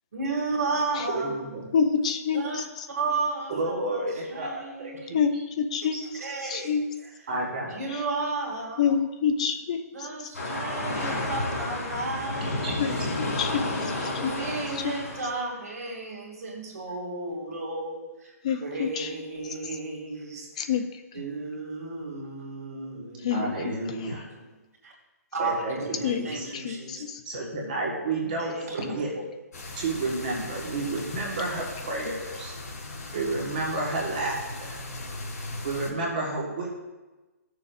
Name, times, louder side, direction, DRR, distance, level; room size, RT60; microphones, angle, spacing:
voice 1, 0.1-1.8 2.3-2.6 2.9-5.0 6.0-7.3 7.6-8.9 9.9-12.8 14.0-20.7 21.1-24.6 24.8-24.9 25.3-27.0 28.4-29.0, right 3 dB, 70° right, -1 dB, 2.5 m, -34 dB
voice 2, 1.1-1.6 3.5-5.4 5.9-6.0 7.3-7.7 12.4-13.0 23.3-24.3 25.4-26.4 27.2-29.1 29.8-32.5 33.1-34.8 35.6-36.7, right 2 dB, 35° right, -2 dB, 1.4 m, -31 dB
voice 3, 1.7-2.4 5.1-6.0 6.5-6.8 8.8-9.8 12.8-12.9 13.4-13.6 14.2-14.3 18.4-19.1 20.7-20.9 23.2-23.7 26.0-26.3 26.6-26.8, left 7 dB, 25° left, 6 dB, 0.5 m, -25 dB
sound 1, 10.3-15.3, left 2 dB, 55° left, 3.0 m, -31 dB
sound 2, 29.5-35.9, left 2 dB, 85° left, 3.1 m, -38 dB
15.5 x 6.8 x 2.5 m, 1.1 s
hypercardioid pair, 180°, 9 cm